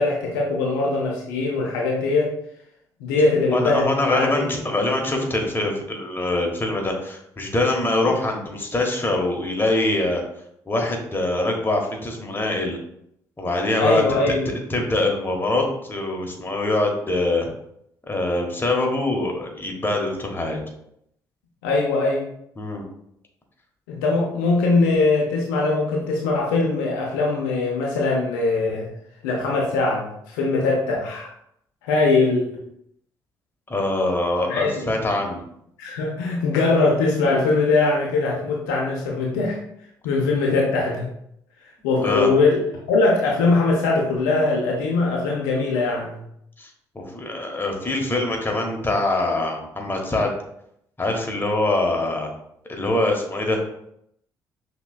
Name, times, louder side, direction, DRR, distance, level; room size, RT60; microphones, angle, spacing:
voice 1, 0.0-2.3 3.0-4.5 13.8-14.5 21.6-22.3 23.9-28.9 29.2-31.3 31.8-32.5 34.5-34.9 35.8-39.6 40.0-41.1 41.8-42.6 42.9-46.2, left 3 dB, 75° left, -2 dB, 0.6 m, -21 dB
voice 2, 3.5-10.2 10.7-12.8 13.4-14.2 14.5-17.5 18.1-20.6 22.6-22.8 33.7-35.4 42.0-42.3 46.6-46.7 46.9-50.3 51.0-52.3 52.7-53.6, left 2 dB, 20° left, 1 dB, 1.2 m, -24 dB
5.8 x 3.0 x 2.2 m, 0.74 s
figure-of-eight pair, 45°, 10 cm